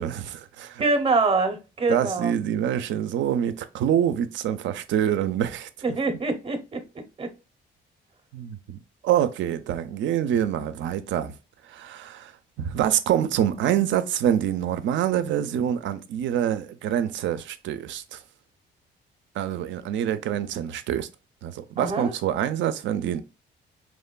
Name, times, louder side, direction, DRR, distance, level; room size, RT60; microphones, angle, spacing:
voice 1, 0.0-0.8 1.9-5.7 8.3-11.3 11.7-12.3 12.6-18.2 19.4-21.1 21.4-23.2, right 10 dB, 70° right, 0.4 m, -26 dB
voice 2, 0.8-2.3 5.8-6.8 7.2-7.3 21.8-22.1, right 3 dB, 30° right, 0.7 m, -24 dB
3.0 x 2.1 x 2.2 m
cardioid pair, 90°, 20 cm